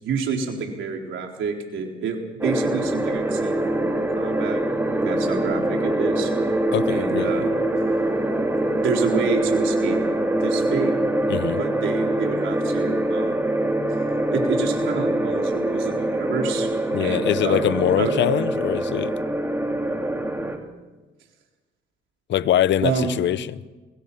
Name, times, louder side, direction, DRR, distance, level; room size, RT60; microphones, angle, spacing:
voice 1, 0.0-2.2 2.4-4.6 4.9-6.3 6.9-7.6 8.8-10.0 10.4-11.0 11.6-13.5 14.3-16.7 17.0-18.2 22.8-23.1, right 5 dB, 75° right, 4.2 m, -28 dB
sound 1, 2.4-20.6, right 1 dB, 10° right, 2.5 m, -24 dB
voice 2, 6.7-7.3 11.3-11.6 16.9-19.1 22.3-23.6, left 11 dB, 65° left, 0.7 m, -23 dB
22.5 x 21.5 x 5.7 m
cardioid pair, 90°, 20 cm